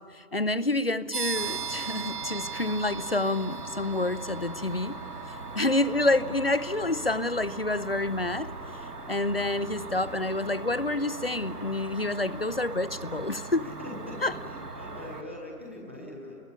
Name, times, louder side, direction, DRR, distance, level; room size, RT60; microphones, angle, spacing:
voice 1, 0.1-5.0 5.5-13.7 14.2-14.3, left 2 dB, 40° left, 0.6 m, -28 dB
sound 1, 1.1-13.6, right 5 dB, 35° right, 1.4 m, -41 dB
Cricket, 1.4-15.2, right 3 dB, 75° right, 2.3 m, -40 dB
voice 2, 13.5-14.2 14.5-16.4, left 1 dB, 10° right, 1.0 m, -42 dB
29.0 x 21.0 x 8.6 m
figure-of-eight pair, 160°, 46 cm